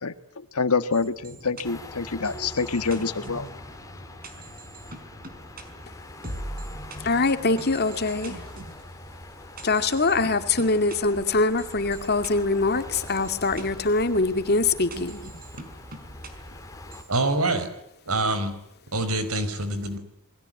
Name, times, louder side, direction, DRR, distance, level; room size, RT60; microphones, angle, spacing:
voice 1, 0.5-3.5, left 4 dB, 90° left, 12 dB, 1.5 m, -26 dB
sound 1, 0.9-7.0 7.6-8.8 9.6-11.0 11.6-12.3 12.9-13.6 14.9-16.3 16.9-17.1, right 2 dB, 40° right, 5.1 m, -43 dB
sound 2, 1.6-17.0, left 1 dB, 15° left, 3.3 m, -42 dB
voice 2, 7.0-8.4 9.6-15.3, left 3 dB, 45° left, 9 dB, 2.3 m, -23 dB
voice 3, 17.1-17.7 18.1-18.5 18.9-20.0, right 2 dB, 85° right, 11 dB, 5.1 m, -25 dB
29.0 x 21.5 x 9.1 m, 0.79 s
head